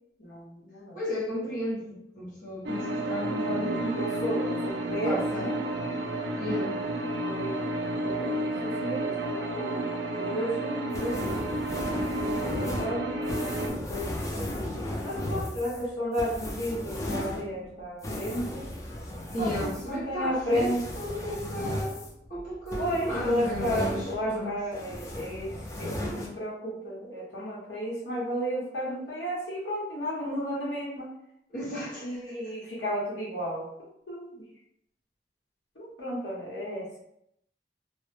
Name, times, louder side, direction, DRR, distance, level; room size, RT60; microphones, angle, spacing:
voice 1, 0.2-1.0 3.4-5.6 7.2-7.8 8.0-9.8 10.1-11.4 12.1-13.6 13.9-14.5 15.0-18.6 19.4-20.8 22.8-31.1 32.0-33.7 34.1-34.4 35.8-37.0, equal, 85° left, -5 dB, 0.8 m, -33 dB
voice 2, 0.9-4.0 5.0-5.5 6.4-6.8 19.3-22.0 22.3-24.6 31.5-32.2, equal, 50° left, -7 dB, 0.8 m, -34 dB
sound 1, 2.6-13.7, right 1 dB, 65° right, 0.4 m, -31 dB
sound 2, 10.9-24.4 24.7-26.3, left 1 dB, 20° left, 0.3 m, -35 dB
2.0 x 2.0 x 3.1 m, 0.77 s
head